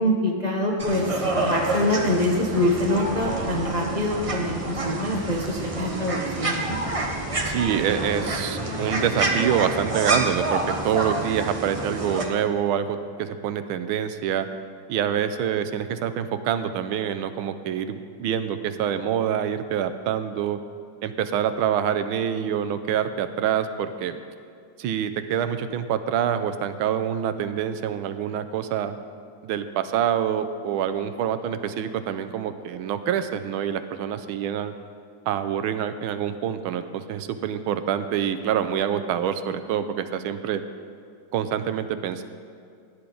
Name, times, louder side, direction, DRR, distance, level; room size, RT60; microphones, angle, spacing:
voice 1, 0.0-6.8, left 1 dB, 40° left, -1 dB, 0.5 m, -25 dB
sound 1, 0.8-12.2, right 2 dB, 45° right, 0.4 m, -28 dB
voice 2, 7.4-14.5 14.9-20.6 21.0-24.2 24.8-29.0 29.4-34.7 35.3-40.6 41.3-42.2, right 9 dB, 80° right, 10 dB, 1.4 m, -26 dB
17.0 x 10.0 x 3.8 m, 2.4 s
omnidirectional pair, 2.3 m